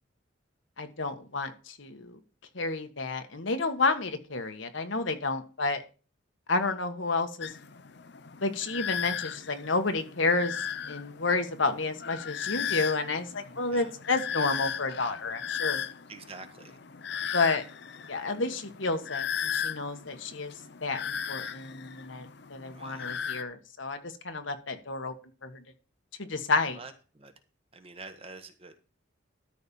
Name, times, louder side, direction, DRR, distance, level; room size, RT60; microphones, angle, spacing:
voice 1, 0.8-2.2 2.5-5.8 6.5-7.6 8.4-15.8 17.3-17.6 18.1-20.5 20.8-25.1 25.4-25.6 26.2-26.8, left 3 dB, 75° left, 7 dB, 1.5 m, -30 dB
sound 1, 7.4-23.4, left 8 dB, 60° left, 0.7 m, -37 dB
voice 2, 16.1-16.8 22.7-23.2 26.7-27.3 27.7-28.8, right 3 dB, 30° right, 7 dB, 1.3 m, -46 dB
13.0 x 4.4 x 7.0 m, 0.35 s
head